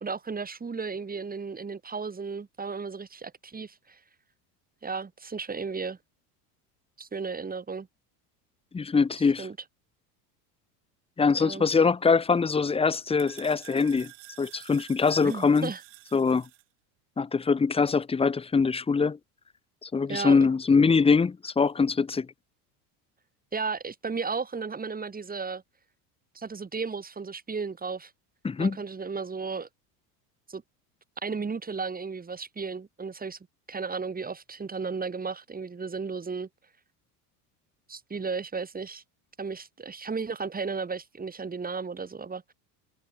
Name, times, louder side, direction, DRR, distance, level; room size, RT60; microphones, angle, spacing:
voice 1, 0.0-4.0 4.8-6.0 7.0-7.9 9.4-9.6 11.4-11.7 15.2-15.8 20.1-20.5 23.5-25.6 26.3-28.1 28.6-29.7 30.5-30.6 31.2-33.4 33.7-36.5 37.9-39.0 39.4-42.5, right 5 dB, 20° right, 2.6 m, -34 dB
voice 2, 8.7-9.5 11.2-14.1 14.4-15.7 16.1-16.5 17.2-19.2 19.8-22.3 28.4-28.8, left 5 dB, 10° left, 0.8 m, -23 dB
sound 1, 12.1-16.6, right 20 dB, 60° right, 7.3 m, -50 dB
supercardioid pair, 105°, 48 cm